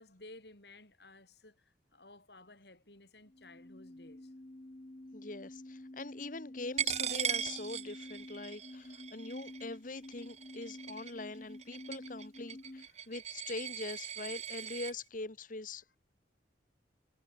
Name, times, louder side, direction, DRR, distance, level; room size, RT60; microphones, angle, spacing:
voice 1, 0.0-4.3 12.9-13.1, left 2 dB, 65° left, 6.5 m, -56 dB
sound 1, 3.3-12.9, left 1 dB, 30° left, 0.9 m, -49 dB
voice 2, 5.1-15.9, left 3 dB, 45° left, 1.5 m, -43 dB
Coin (dropping), 6.8-14.9, right 9 dB, 35° right, 2.5 m, -39 dB
head